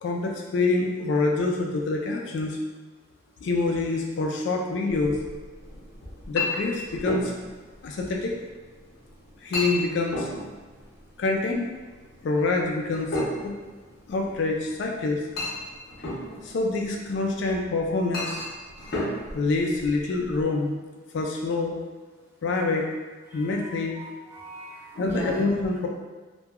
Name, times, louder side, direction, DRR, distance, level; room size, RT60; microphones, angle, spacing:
voice 1, 0.0-2.6 3.4-5.2 6.3-7.4 7.8-8.4 9.4-10.3 11.2-11.7 12.2-13.6 14.1-15.2 16.4-18.4 19.3-20.8 21.1-21.8 22.4-22.9 23.3-24.0 25.0-25.9, left 3 dB, 70° left, 0 dB, 0.3 m, -26 dB
Chink clink, 4.9-20.4, left 2 dB, 55° left, 0.7 m, -35 dB
voice 2, 23.3-25.4, right 1 dB, 15° right, -7 dB, 0.6 m, -38 dB
2.8 x 2.2 x 2.3 m, 1.3 s
head